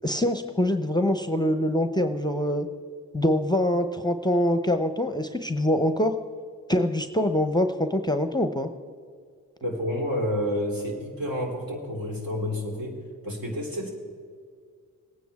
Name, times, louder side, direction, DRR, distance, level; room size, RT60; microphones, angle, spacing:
voice 1, 0.0-2.7 3.1-6.1 6.7-8.7, left 1 dB, 10° left, 8 dB, 0.8 m, -24 dB
voice 2, 9.6-13.0 13.2-13.9, equal, 60° right, 0 dB, 3.4 m, -29 dB
19.5 x 9.2 x 3.6 m, 2.1 s
hypercardioid pair, 40°, 39 cm